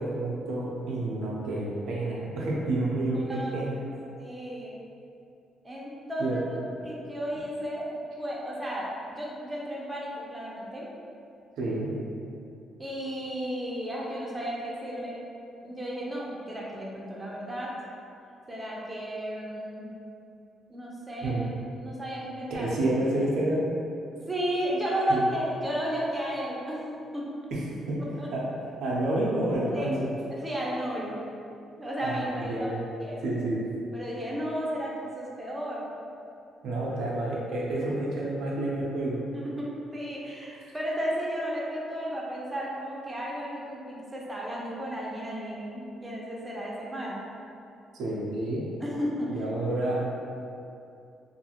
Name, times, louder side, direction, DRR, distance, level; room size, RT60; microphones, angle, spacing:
voice 1, 0.0-3.7 6.2-6.4 11.6-11.9 21.2-21.4 22.5-23.7 25.1-25.2 27.5-28.0 28.3-28.4 28.8-30.1 32.0-32.8 33.2-33.6 36.6-39.2 47.9-48.6 49.3-50.0, right 1 dB, 80° right, -4 dB, 0.5 m, -29 dB
voice 2, 3.1-3.5 4.1-4.8 5.6-6.6 6.8-7.8 8.2-10.9 12.8-15.2 15.6-17.7 18.5-19.9 20.7-21.4 21.8-22.7 24.3-27.3 28.0-28.3 29.7-29.9 30.3-31.2 31.8-33.2 33.9-35.9 39.3-47.2 48.8-49.4, equal, 15° right, -5 dB, 0.6 m, -33 dB
2.5 x 2.3 x 2.8 m, 2.6 s
cardioid pair, 90°, 0 cm